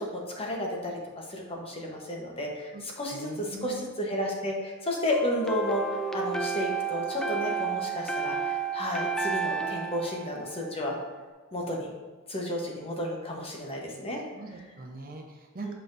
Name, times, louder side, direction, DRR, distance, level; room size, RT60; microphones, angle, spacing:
voice 1, 0.0-11.0 11.5-11.9 12.3-14.2 15.6-15.7, left 1 dB, 25° left, -1 dB, 1.0 m, -32 dB
voice 2, 3.1-3.9 14.3-15.7, right 2 dB, 40° right, 2 dB, 0.8 m, -42 dB
sound 1, 5.1-11.1, right 5 dB, 5° left, 0.4 m, -32 dB
7.6 x 5.6 x 2.6 m, 1.4 s
head